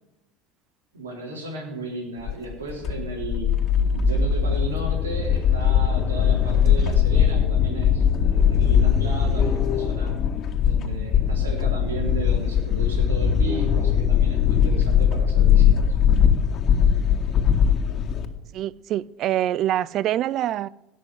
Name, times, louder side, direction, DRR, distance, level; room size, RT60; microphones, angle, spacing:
voice 1, 0.9-3.5 3.9-10.1 10.6-15.8, right 2 dB, 90° right, 3.9 m, -35 dB
sound 1, 2.3-18.3, left 8 dB, 45° left, 2.0 m, -20 dB
voice 2, 18.5-20.7, right 12 dB, 50° right, 0.5 m, -25 dB
17.5 x 6.5 x 9.3 m
hypercardioid pair, 80°, 0 cm